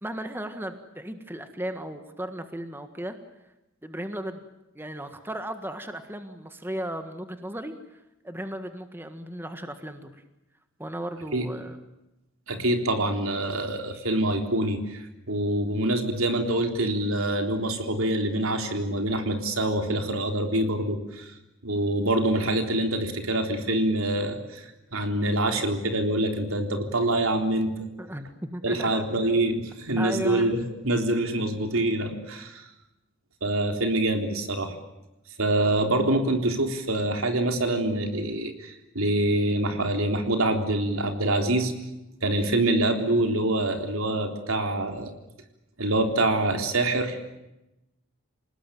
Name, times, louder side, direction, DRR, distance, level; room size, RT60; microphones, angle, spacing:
voice 1, 0.0-3.2 3.8-4.4 4.7-10.2 10.8-11.8 28.0-29.1 30.0-30.6, right 1 dB, 10° right, 8 dB, 1.7 m, -35 dB
voice 2, 12.5-21.3 21.6-27.7 28.6-32.6 33.4-34.8 35.4-41.7 42.2-45.1 45.8-47.2, right 1 dB, 85° right, 5 dB, 3.7 m, -25 dB
28.0 x 19.0 x 9.3 m, 0.94 s
head